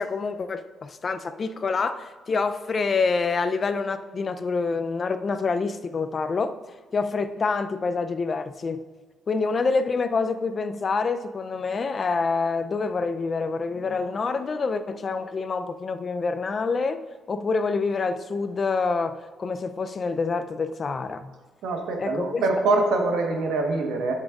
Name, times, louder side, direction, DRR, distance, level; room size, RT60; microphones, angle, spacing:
voice 1, 0.0-6.6 6.9-8.8 9.3-17.0 17.3-21.3 22.0-22.4, left 4 dB, 40° left, 10 dB, 0.4 m, -27 dB
voice 2, 21.6-24.1, right 3 dB, 85° right, 3 dB, 1.2 m, -24 dB
10.0 x 7.2 x 2.4 m, 1.5 s
cardioid pair, 90°, 0 cm